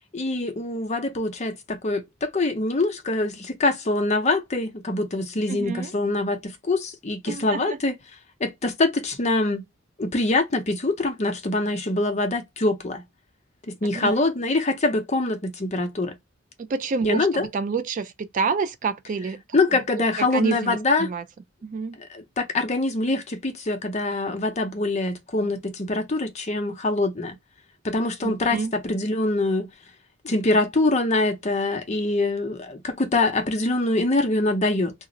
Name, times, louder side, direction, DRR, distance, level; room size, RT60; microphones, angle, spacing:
voice 1, 0.1-7.9 8.4-9.6 10.0-13.0 13.7-16.1 17.0-17.5 19.5-21.1 22.0-27.4 27.8-29.7 30.2-34.9, left 2 dB, 35° left, 0.6 m, -24 dB
voice 2, 5.5-5.9 7.3-7.8 13.9-14.2 16.7-19.4 20.3-21.2 21.6-21.9 28.2-28.7, right 4 dB, 40° right, 0.3 m, -28 dB
2.4 x 2.0 x 3.7 m
head